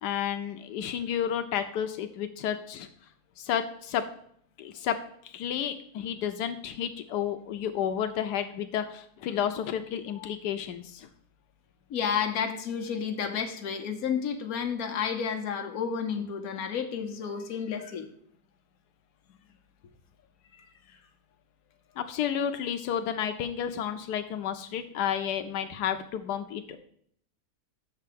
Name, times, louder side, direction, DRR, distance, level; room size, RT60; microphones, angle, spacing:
voice 1, 0.0-2.9 3.4-4.0 4.6-5.0 5.2-11.1 22.0-26.8, left 9 dB, 90° left, 7 dB, 1.2 m, -31 dB
voice 2, 11.9-18.1 20.5-20.6, left 7 dB, 65° left, 4 dB, 1.4 m, -31 dB
6.5 x 4.7 x 6.8 m, 0.63 s
omnidirectional pair, 1.7 m